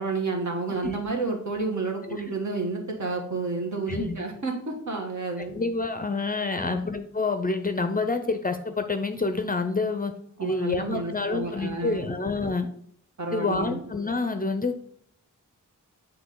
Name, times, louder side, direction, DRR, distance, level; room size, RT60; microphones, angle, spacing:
voice 1, 0.0-5.6 6.5-6.8 10.4-12.2 13.2-13.8, right 3 dB, 60° right, 1 dB, 1.3 m, -30 dB
voice 2, 5.5-10.1 10.4-12.7 13.3-14.8, left 3 dB, 25° left, 8 dB, 0.5 m, -28 dB
8.3 x 3.2 x 3.8 m, 0.64 s
wide cardioid pair, 100°, 33 cm